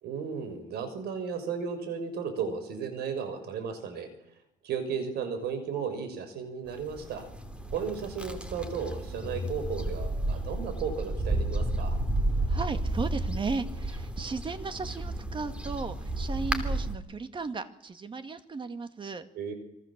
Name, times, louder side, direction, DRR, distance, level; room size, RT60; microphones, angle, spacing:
voice 1, 0.0-4.1 4.6-7.3 7.7-12.0 19.3-19.5, right 6 dB, 75° right, 9 dB, 6.2 m, -34 dB
sound 1, 6.7-17.0, right 1 dB, 5° right, 3.1 m, -32 dB
voice 2, 12.5-19.3, right 4 dB, 30° right, 10 dB, 2.1 m, -35 dB
26.5 x 23.5 x 7.5 m, 0.80 s
cardioid pair, 110°, 17 cm